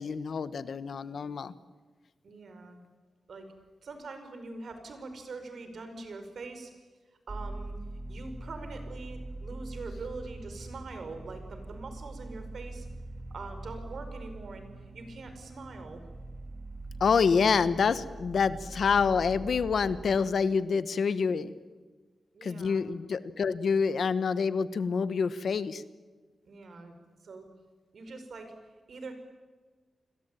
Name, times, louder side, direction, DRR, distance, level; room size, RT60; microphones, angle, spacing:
voice 1, 0.0-1.5 17.0-21.5 22.4-25.8, left 5 dB, 65° left, 14 dB, 1.2 m, -27 dB
voice 2, 2.2-2.8 3.3-3.5 3.8-6.7 7.3-7.8 8.1-12.9 13.3-16.0 22.3-22.8 26.4-27.5 27.9-28.5 28.9-29.1, right 3 dB, 65° right, 7 dB, 5.2 m, -43 dB
sound 1, 7.3-20.2, right 2 dB, 30° right, 2.9 m, -42 dB
29.5 x 22.0 x 9.1 m, 1.4 s
wide cardioid pair, 140°, 0 cm